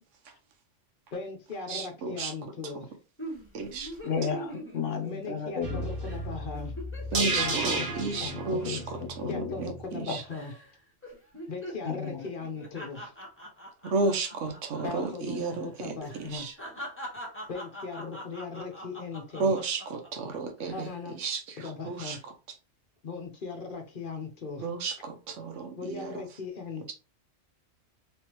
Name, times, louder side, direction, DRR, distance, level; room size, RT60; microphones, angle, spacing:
voice 1, 1.1-2.9 5.1-6.7 9.3-10.6 11.5-13.1 14.8-16.5 17.5-19.5 20.7-21.1 21.6-22.2 23.0-24.6 25.8-26.9, left 4 dB, 50° left, 0.9 m, -38 dB
voice 2, 1.7-2.3 3.5-4.0 7.1-10.2 13.9-15.9 16.2-16.5 19.4-22.3 24.6-26.2, right 4 dB, 80° right, 1.2 m, -33 dB
sound 1, 3.2-5.7 6.0-6.2 6.5-10.0 10.3-10.7 11.0-15.1 15.3-15.5 16.0-20.1 20.6-21.0, equal, 10° left, 1.1 m, -43 dB
voice 3, 4.0-5.8 7.3-7.9 8.2-9.6 11.9-12.2, left 6 dB, 80° left, 1.1 m, -34 dB
sound 2, 5.6-9.8 10.1-10.2, right 2 dB, 50° right, 1.0 m, -33 dB
3.5 x 3.4 x 3.0 m
omnidirectional pair, 1.3 m